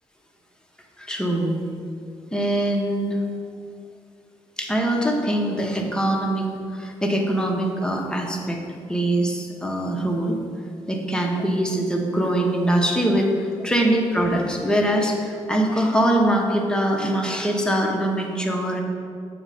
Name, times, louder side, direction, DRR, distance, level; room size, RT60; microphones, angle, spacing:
voice 1, 1.0-1.6 2.3-3.2 4.6-8.6 8.9-10.4 10.9-18.8, right 1 dB, 5° left, 0 dB, 1.1 m, -23 dB
7.1 x 3.1 x 5.6 m, 2.3 s
supercardioid pair, 60°, 12 cm